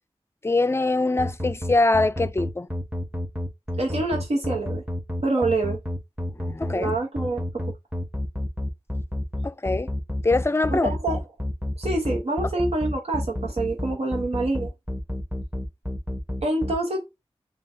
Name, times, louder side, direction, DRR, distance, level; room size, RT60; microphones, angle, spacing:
voice 1, 0.4-2.7 6.3-7.0 9.4-9.9 10.2-11.0, left 2 dB, 25° left, 0.4 m, -23 dB
sound 1, 1.2-16.7, left 1 dB, 15° right, 1.0 m, -29 dB
voice 2, 3.8-4.8 5.2-5.8 6.7-7.4 10.7-11.2 11.8-14.7 16.4-17.0, right 2 dB, 85° right, 0.9 m, -26 dB
6.9 x 2.3 x 2.6 m
wide cardioid pair, 65°, 10 cm